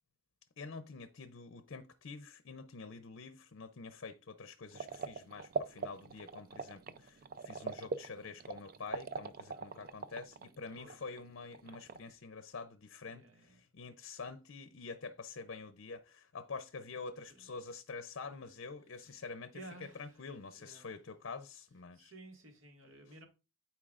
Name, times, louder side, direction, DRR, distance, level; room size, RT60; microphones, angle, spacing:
voice 1, 0.6-22.1, left 4 dB, 65° left, 0.6 m, -47 dB
sound 1, 4.7-11.2 11.4-12.1, right 5 dB, 45° right, 0.4 m, -42 dB
voice 2, 9.5-9.9 10.8-11.0 13.0-13.7 17.0-17.5 18.9-19.2 19.5-20.3 20.5-20.9 21.9-23.3, right 2 dB, 80° right, 1.9 m, -55 dB
12.0 x 4.6 x 2.5 m
head